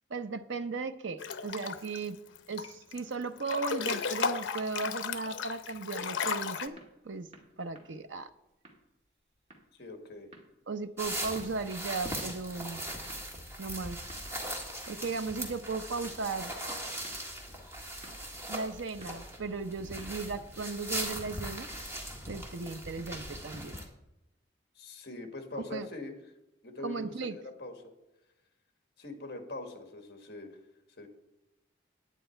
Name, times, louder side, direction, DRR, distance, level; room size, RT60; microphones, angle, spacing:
voice 1, 0.1-2.2 2.5-6.8 7.0-7.3 7.6-8.3 10.7-12.8 13.6-14.0 14.9-16.5 18.5-21.7 22.3-23.8 25.5-25.9 26.8-27.4, right 4 dB, 80° right, 10 dB, 0.7 m, -36 dB
Breathing / Bathtub (filling or washing) / Splash splatter, 1.2-2.0 2.4-3.0 3.4-6.7, left 5 dB, 85° left, 0.7 m, -34 dB
sound 1, 5.7-22.2, right 1 dB, 35° right, 1.9 m, -59 dB
voice 2, 9.7-10.3 24.7-26.1 26.6-27.7 29.0-30.6 31.0-31.1, left 2 dB, 55° left, 5 dB, 1.6 m, -42 dB
sound 2, 11.0-23.8, right 1 dB, 15° right, 1.6 m, -40 dB
10.0 x 9.5 x 4.5 m, 0.93 s
head